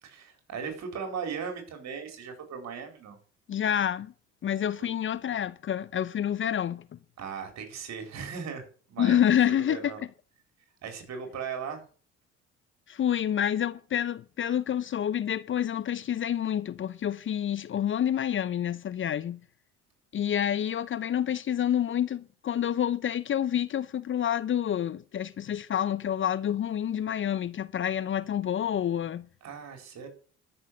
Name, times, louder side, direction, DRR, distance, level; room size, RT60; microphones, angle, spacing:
voice 1, 0.0-3.2 7.2-9.2 9.6-10.0 10.8-11.8 29.4-30.1, right 6 dB, 55° right, 4.4 m, -38 dB
voice 2, 3.5-4.1 4.4-7.0 9.0-10.1 12.9-19.4 20.1-29.3, left 10 dB, 35° left, 0.7 m, -28 dB
13.0 x 6.4 x 6.5 m
hypercardioid pair, 60°, 33 cm